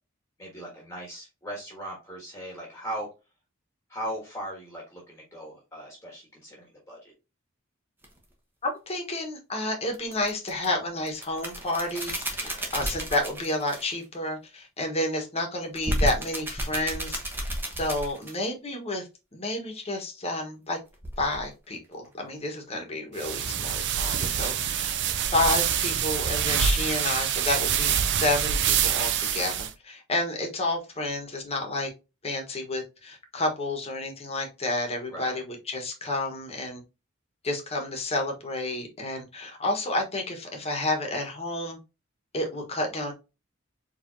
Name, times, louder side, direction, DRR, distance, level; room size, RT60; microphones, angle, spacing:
voice 1, 0.4-3.1 3.9-7.1 12.4-12.7 24.1-24.5 35.1-35.4, equal, 15° left, -2 dB, 1.4 m, -39 dB
sound 1, 8.0-8.2 9.9-10.7 11.1-14.0 15.7-18.4 20.9-21.5 24.0-25.6 26.0-26.1 26.5-26.7, equal, 10° right, 1.0 m, -33 dB
voice 2, 8.6-20.8 21.2-24.9 25.3-31.9 32.2-36.8 37.4-41.8 42.3-43.1, left 2 dB, 30° left, 2 dB, 1.3 m, -30 dB
sound 2, 23.2-29.7, right 8 dB, 60° right, 0.5 m, -26 dB
4.7 x 3.3 x 2.7 m, 0.27 s
head